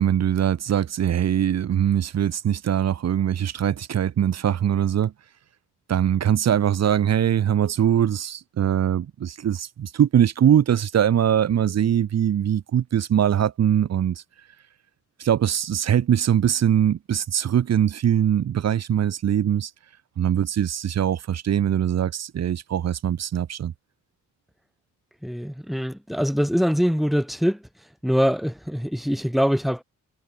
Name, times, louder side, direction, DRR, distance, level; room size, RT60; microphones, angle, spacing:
voice 1, 0.0-5.1 5.9-14.2 15.2-19.7 20.2-23.7, right 9 dB, 55° right, 3.3 m, -22 dB
voice 2, 25.2-27.6 28.0-29.8, equal, ahead, 5.9 m, -23 dB
cardioid pair, 155°, 31 cm